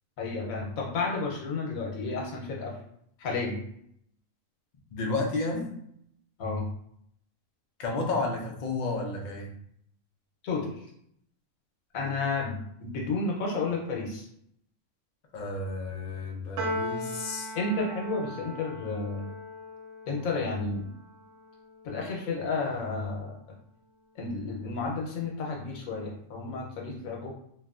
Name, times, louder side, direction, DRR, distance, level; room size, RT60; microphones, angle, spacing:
voice 1, 0.2-2.8 3.2-3.6 6.4-6.7 10.4-10.9 11.9-14.3 17.5-19.3 20.1-20.9 21.8-23.4 24.1-27.3, left 3 dB, 85° left, -2 dB, 1.2 m, -31 dB
voice 2, 4.9-5.7 7.8-9.5 15.3-17.6, left 3 dB, 55° left, 0 dB, 0.5 m, -31 dB
Piano, 16.6-23.1, equal, 70° right, 0.9 m, -39 dB
3.0 x 2.5 x 2.3 m, 0.71 s
omnidirectional pair, 1.4 m